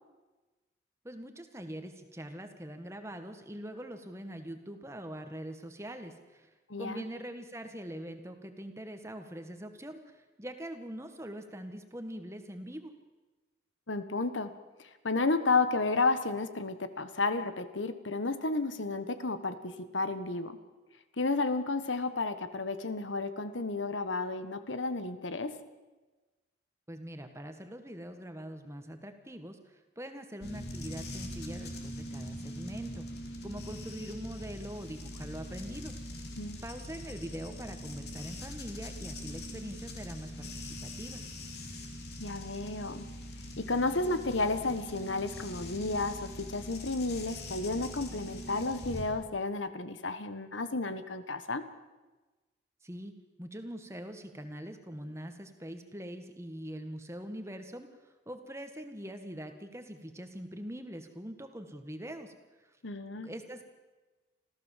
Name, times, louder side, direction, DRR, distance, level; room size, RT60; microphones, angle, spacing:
voice 1, 1.0-6.5 6.8-12.9 26.9-33.1 33.4-35.9 36.6-41.2 52.8-53.1 53.4-62.3 62.6-62.8 63.2-63.6, equal, 15° right, 7 dB, 1.6 m, -43 dB
voice 2, 6.7-7.0 13.9-14.5 15.0-20.6 21.2-25.6 36.4-36.6 42.2-43.0 43.6-51.6 62.8-63.3, left 3 dB, 85° left, 11 dB, 1.4 m, -32 dB
sound 1, 30.4-49.0, left 1 dB, 55° left, 3.1 m, -42 dB
26.5 x 15.0 x 7.4 m, 1.2 s
head